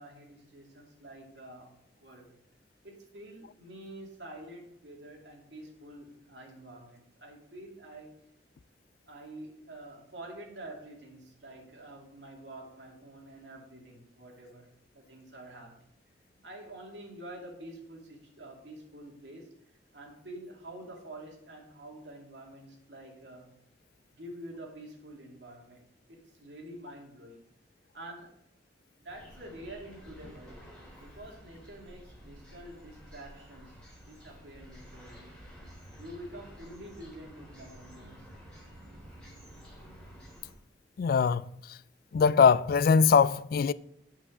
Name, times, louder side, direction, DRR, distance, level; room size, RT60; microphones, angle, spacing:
voice 1, 0.0-1.7 2.0-2.3 2.8-8.1 9.1-15.7 16.4-19.5 19.9-23.5 24.1-25.8 26.1-27.4 27.9-28.4 29.0-30.6 31.0-33.8 34.1-35.4 36.0-38.3, right 1 dB, 75° right, 2.5 m, -47 dB
sound 1, 29.1-40.5, equal, 5° left, 3.7 m, -51 dB
voice 2, 41.0-41.4 42.1-43.7, left 6 dB, 55° left, 0.3 m, -22 dB
8.3 x 6.0 x 7.0 m
head